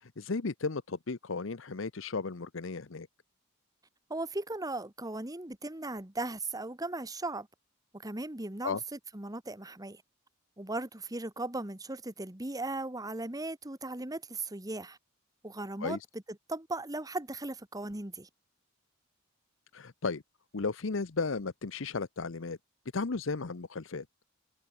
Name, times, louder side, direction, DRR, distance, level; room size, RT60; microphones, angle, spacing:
voice 1, 0.0-3.1 8.6-8.8 15.8-16.0 19.7-20.2 20.5-22.6 22.9-24.0, left 4 dB, 65° left, 0.8 m, -34 dB
voice 2, 4.1-7.5 8.0-10.0 10.6-15.0 15.4-16.2 16.5-18.3, right 2 dB, 15° right, 1.4 m, -37 dB
head